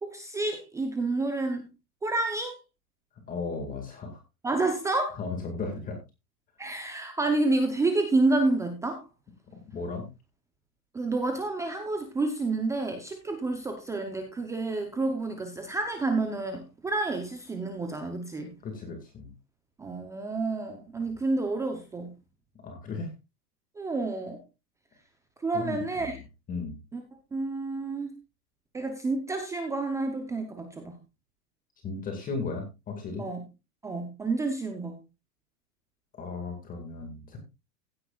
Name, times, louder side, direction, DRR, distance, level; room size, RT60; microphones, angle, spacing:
voice 1, 0.0-1.7 2.0-2.6 4.4-5.2 6.6-9.0 10.9-18.5 19.8-22.2 23.8-24.4 25.4-26.2 26.9-27.0 27.3-28.1 28.7-31.0 33.2-33.4 33.8-34.9, right 2 dB, 5° right, 5 dB, 0.8 m, -29 dB
voice 2, 3.3-4.2 5.2-6.0 9.7-10.1 18.6-19.3 22.6-23.1 25.5-26.1 26.5-26.8 31.8-33.3 36.1-37.4, left 4 dB, 20° left, 4 dB, 2.1 m, -35 dB
16.0 x 9.8 x 2.4 m, 0.26 s
supercardioid pair, 155°, 46 cm